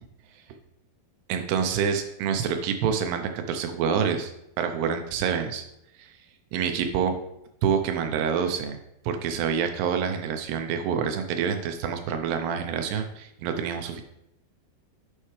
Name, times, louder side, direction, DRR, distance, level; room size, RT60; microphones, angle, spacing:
voice 1, 1.3-5.6 6.0-6.1 6.5-7.1 7.6-8.8 9.0-14.0, right 7 dB, 80° right, 6 dB, 2.8 m, -27 dB
10.0 x 5.5 x 3.2 m, 0.79 s
omnidirectional pair, 4.8 m